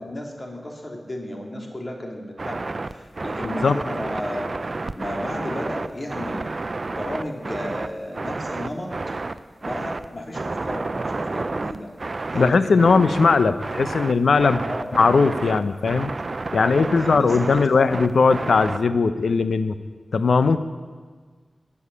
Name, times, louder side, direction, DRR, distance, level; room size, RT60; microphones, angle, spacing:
voice 1, 0.0-6.5 6.9-8.9 9.6-11.9 12.3-13.1 14.6-14.9 16.6-18.1, left 1 dB, 35° left, 1 dB, 2.9 m, -33 dB
sound 1, 2.4-18.8, right 3 dB, 50° right, 0.6 m, -30 dB
voice 2, 12.3-14.6 14.9-16.1 16.5-19.8 20.1-20.6, left 4 dB, 80° left, 12 dB, 0.7 m, -19 dB
15.5 x 7.2 x 9.9 m, 1.5 s
cardioid pair, 45°, 0 cm